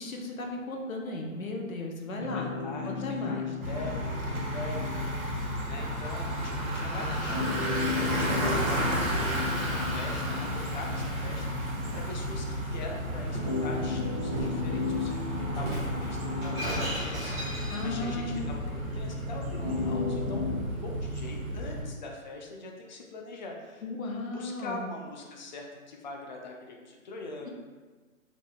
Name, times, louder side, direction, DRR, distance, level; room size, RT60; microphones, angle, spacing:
voice 1, 0.0-2.5 2.8-3.4 17.7-18.5 23.8-24.9, left 2 dB, 75° left, 1 dB, 0.9 m, -35 dB
voice 2, 2.2-23.8 24.3-27.5, left 2 dB, 35° left, 0 dB, 0.5 m, -43 dB
sound 1, 2.2-20.6, left 5 dB, 10° left, 1.1 m, -36 dB
Bicycle, 3.6-21.8, right 1 dB, 80° right, 1.1 m, -33 dB
Shatter, 12.7-13.6 14.3-14.6 15.5-18.1, right 1 dB, 15° right, 1.0 m, -36 dB
3.8 x 3.7 x 2.3 m, 1.4 s
figure-of-eight pair, 135°, 42 cm